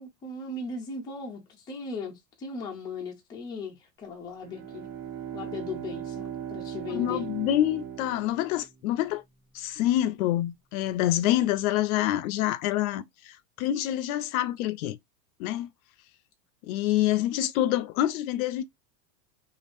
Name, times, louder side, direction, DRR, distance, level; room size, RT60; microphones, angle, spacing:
voice 1, 0.0-4.9 5.3-7.3, left 3 dB, 10° left, 0.4 m, -38 dB
Bowed string instrument, 4.4-9.0, right 9 dB, 50° right, 1.5 m, -38 dB
voice 2, 6.9-9.2 9.5-15.0 15.4-15.7 16.6-18.6, left 13 dB, 65° left, 0.5 m, -27 dB
3.3 x 2.5 x 2.5 m
supercardioid pair, 150°, 46 cm